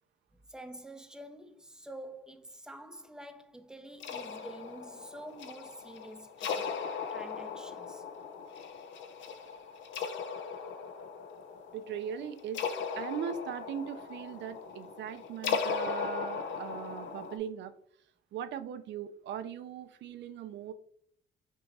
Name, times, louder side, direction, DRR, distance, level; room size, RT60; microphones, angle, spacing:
voice 1, 0.5-8.0, right 1 dB, 5° right, 0.5 m, -48 dB
sound 1, 4.0-17.4, left 6 dB, 80° left, 0.6 m, -38 dB
voice 2, 11.7-12.6 13.0-17.7 18.3-20.7, right 8 dB, 70° right, 0.4 m, -39 dB
5.9 x 2.9 x 2.6 m
cardioid pair, 115°, 19 cm